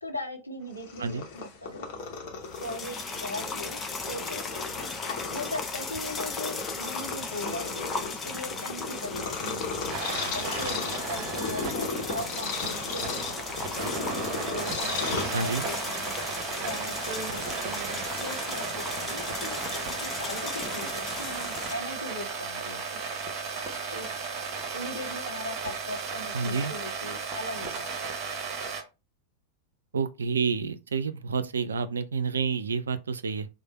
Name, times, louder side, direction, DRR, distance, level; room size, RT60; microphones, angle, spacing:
voice 1, 0.0-1.9 2.6-4.4 5.3-7.8 8.1-9.9 10.3-13.6 14.5-16.2 16.6-23.1 23.9-24.2 24.7-28.1, left 1 dB, 85° left, 0.8 m, -39 dB
Purr, 0.7-15.8, left 4 dB, 45° left, 0.9 m, -36 dB
sound 1, 2.4-21.7, left 4 dB, 20° left, 0.5 m, -37 dB
sound 2, 9.9-28.8, right 4 dB, 35° right, 0.9 m, -35 dB
voice 2, 15.1-15.6 26.3-26.7 29.9-33.5, right 5 dB, 70° right, 0.3 m, -29 dB
3.3 x 2.0 x 4.1 m
figure-of-eight pair, 90°, 0 cm